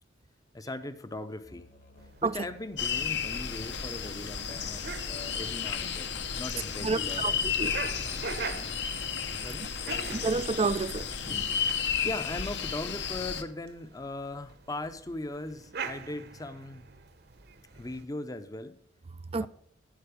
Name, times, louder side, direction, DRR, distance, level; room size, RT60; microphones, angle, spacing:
voice 1, 0.5-1.7 2.2-7.5 8.4-8.8 9.3-10.5 12.0-16.9 17.8-18.8 19.4-19.5, left 2 dB, 20° left, 0.7 m, -39 dB
Musical instrument, 1.4-8.3, left 1 dB, 45° left, 1.3 m, -55 dB
sound 1, 2.0-18.1, right 4 dB, 55° right, 0.9 m, -44 dB
sound 2, 2.8-13.4, left 7 dB, 60° left, 1.0 m, -33 dB
voice 2, 6.8-7.3 7.6-7.7 10.2-11.5 19.3-19.5, right 4 dB, 30° right, 0.4 m, -29 dB
11.5 x 9.1 x 5.1 m
head